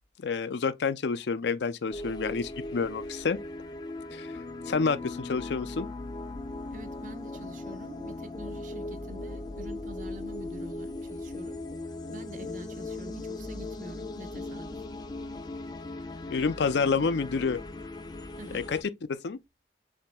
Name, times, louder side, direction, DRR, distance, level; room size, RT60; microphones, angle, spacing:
voice 1, 0.2-3.4 4.1-4.3 4.7-5.9 16.3-17.6 18.5-18.8 19.1-19.4, left 5 dB, 75° left, 0.5 m, -28 dB
sound 1, 1.9-18.8, left 2 dB, 25° left, 0.5 m, -38 dB
voice 2, 6.7-11.6 12.1-14.8 18.4-18.7, right 1 dB, 45° right, 0.7 m, -46 dB
7.0 x 2.7 x 2.2 m
head